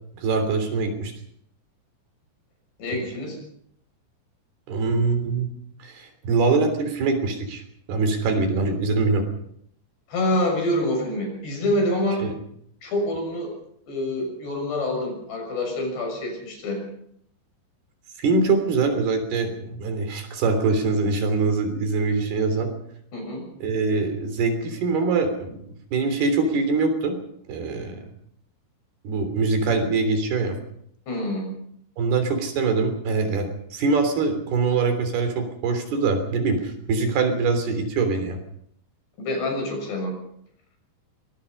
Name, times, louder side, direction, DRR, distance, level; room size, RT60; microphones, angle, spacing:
voice 1, 0.2-1.1 2.9-3.0 4.7-5.5 5.8-7.6 7.9-9.2 12.2-12.3 18.2-22.7 23.6-27.1 27.5-28.1 29.1-30.6 32.0-38.4, right 4 dB, 65° right, 7 dB, 5.2 m, -23 dB
voice 2, 2.8-3.4 10.1-12.2 12.8-13.5 13.9-16.8 23.1-23.5 31.1-31.5 39.2-40.1, left 1 dB, 70° left, 2 dB, 8.8 m, -26 dB
23.5 x 20.5 x 5.6 m, 0.69 s
omnidirectional pair, 5.0 m